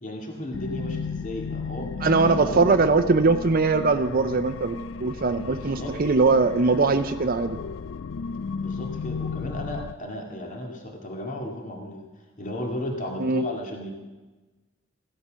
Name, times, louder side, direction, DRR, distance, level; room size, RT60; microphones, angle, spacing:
voice 1, 0.0-2.6 5.4-5.9 8.6-12.0 12.4-13.9, left 1 dB, 40° left, 2 dB, 2.2 m, -34 dB
sound 1, 0.5-9.9, left 4 dB, 85° left, 0.5 m, -34 dB
voice 2, 2.0-7.6 13.2-13.4, right 3 dB, 50° right, 9 dB, 0.7 m, -21 dB
15.5 x 13.0 x 6.3 m, 1.2 s
head